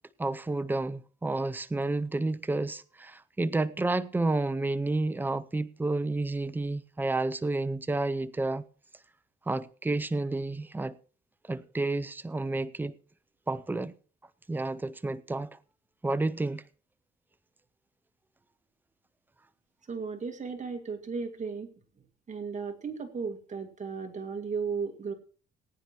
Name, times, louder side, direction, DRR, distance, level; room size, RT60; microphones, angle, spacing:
voice 1, 0.2-8.6 9.5-10.9 11.5-12.9 13.5-13.9 14.5-15.5 16.0-16.6, right 2 dB, 10° right, 0.6 m, -30 dB
voice 2, 19.9-21.7 22.3-25.1, right 5 dB, 35° right, 2.2 m, -35 dB
19.5 x 9.7 x 3.1 m
cardioid pair, 90°, 20 cm